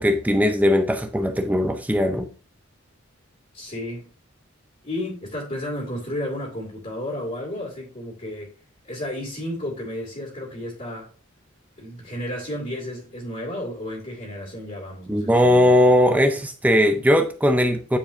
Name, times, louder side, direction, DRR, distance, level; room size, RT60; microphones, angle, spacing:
voice 1, 0.0-2.3 15.1-18.0, equal, 5° right, 0.4 m, -19 dB
voice 2, 3.5-4.1 4.8-8.5 8.8-11.1 11.8-15.7, left 1 dB, 35° left, 2.5 m, -32 dB
9.0 x 4.8 x 2.7 m
head